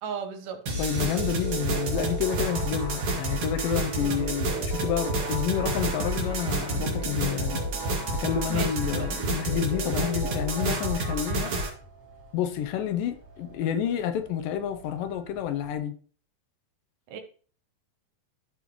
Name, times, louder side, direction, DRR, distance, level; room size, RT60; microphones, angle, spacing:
voice 1, 0.0-0.6 3.9-4.2 8.5-9.1 17.1-17.2, right 6 dB, 70° right, 2.4 m, -36 dB
sound 1, 0.7-11.7, right 2 dB, 45° right, 2.4 m, -29 dB
voice 2, 0.8-7.6 8.1-11.5 12.3-15.9, left 9 dB, 80° left, 2.3 m, -29 dB
sound 2, 1.1-15.8, right 3 dB, 5° left, 3.3 m, -49 dB
13.5 x 5.5 x 3.1 m
omnidirectional pair, 4.1 m